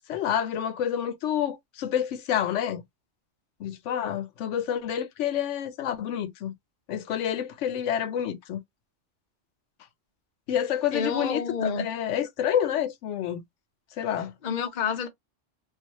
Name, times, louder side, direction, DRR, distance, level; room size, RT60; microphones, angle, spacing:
voice 1, 0.1-2.8 3.6-6.5 6.9-8.6 10.5-13.4 14.0-14.3, left 9 dB, 85° left, 0.9 m, -28 dB
voice 2, 10.9-11.8 14.4-15.1, left 6 dB, 50° left, 0.7 m, -29 dB
2.4 x 2.4 x 2.8 m
omnidirectional pair, 1.2 m